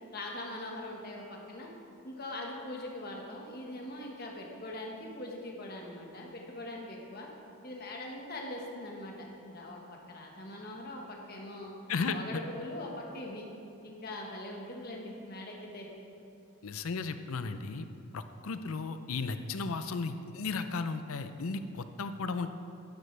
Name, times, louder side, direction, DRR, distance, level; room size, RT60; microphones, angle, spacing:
voice 1, 0.1-1.7 2.0-7.3 7.6-11.7 12.1-13.4 13.8-15.9, left 1 dB, 45° left, 0 dB, 1.4 m, -42 dB
voice 2, 16.6-17.9 18.1-22.5, left 4 dB, 70° left, 10 dB, 0.5 m, -35 dB
12.0 x 9.8 x 3.3 m, 2.7 s
head